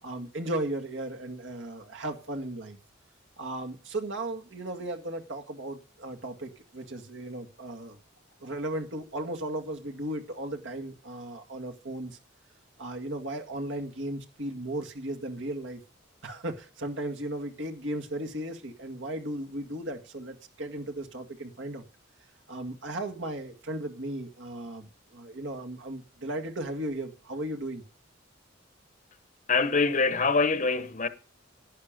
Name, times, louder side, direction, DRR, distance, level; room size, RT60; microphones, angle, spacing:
voice 1, 0.0-2.8 3.4-8.0 8.4-12.2 12.8-15.8 16.2-21.8 22.5-27.8, right 1 dB, 65° right, 2.0 m, -36 dB
voice 2, 29.5-31.1, left 4 dB, 40° left, 1.0 m, -24 dB
11.5 x 10.5 x 5.1 m
head